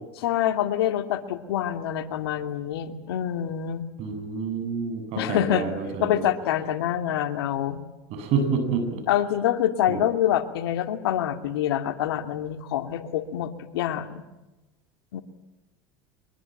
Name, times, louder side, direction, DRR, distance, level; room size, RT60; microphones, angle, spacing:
voice 1, 0.2-3.9 5.2-5.7 6.0-7.8 9.1-14.2 15.1-15.2, left 11 dB, 80° left, 8 dB, 2.5 m, -26 dB
voice 2, 4.0-6.2 8.1-9.0 9.9-10.0, right 5 dB, 55° right, 7 dB, 7.5 m, -28 dB
23.5 x 22.5 x 9.1 m, 1.0 s
hypercardioid pair, 95°, 13 cm